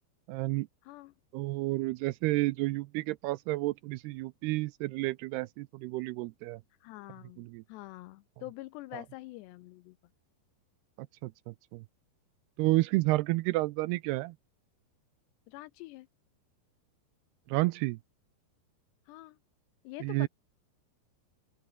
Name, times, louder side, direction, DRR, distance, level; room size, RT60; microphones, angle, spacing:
voice 1, 0.3-0.7 1.3-6.6 7.4-7.6 8.9-9.0 11.0-11.8 12.6-14.4 17.5-18.0 20.0-20.3, right 20 dB, 80° right, 2.4 m, -31 dB
voice 2, 6.8-10.0 15.5-16.1 19.1-19.4 19.8-20.3, left 19 dB, 80° left, 2.8 m, -46 dB
open air
omnidirectional pair, 5.0 m